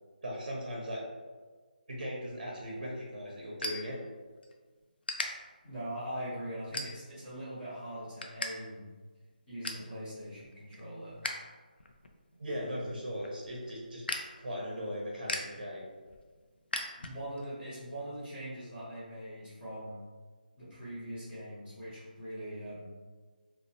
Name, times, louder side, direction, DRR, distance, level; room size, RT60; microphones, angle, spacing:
voice 1, 0.2-1.0 1.9-4.0 12.4-14.0 14.4-15.8, equal, 50° right, -3 dB, 0.5 m, -38 dB
sound 1, 2.5-4.5 5.0-5.3 5.8-6.1 6.7-7.3 7.7-8.5 8.8-8.9 9.3-9.9 10.4-11.4 11.7-17.5, left 2 dB, 80° left, 0.3 m, -39 dB
voice 2, 5.6-8.9 9.5-11.2 12.5-12.9 17.0-20.0 20.6-22.9, equal, 15° left, -14 dB, 0.6 m, -42 dB
2.6 x 2.0 x 2.6 m, 1.4 s
hypercardioid pair, 175°, 5 cm